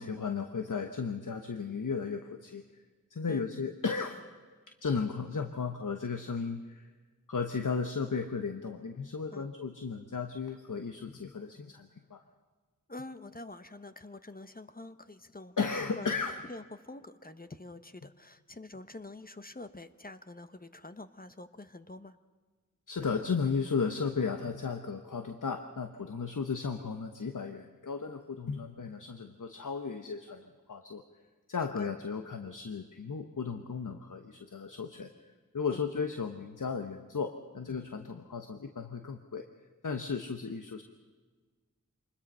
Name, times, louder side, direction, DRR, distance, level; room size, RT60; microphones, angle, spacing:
voice 1, 0.0-2.8 3.1-4.2 4.8-6.9 7.3-12.2 15.6-16.4 22.9-31.0 31.5-39.4 39.8-40.8, left 5 dB, 70° left, 6 dB, 1.2 m, -35 dB
voice 2, 12.9-15.6 16.0-16.2 16.5-22.2 31.8-31.9 35.7-35.8, left 2 dB, 25° left, 10 dB, 1.0 m, -46 dB
25.0 x 21.0 x 5.6 m, 1.4 s
wide cardioid pair, 60°, 32 cm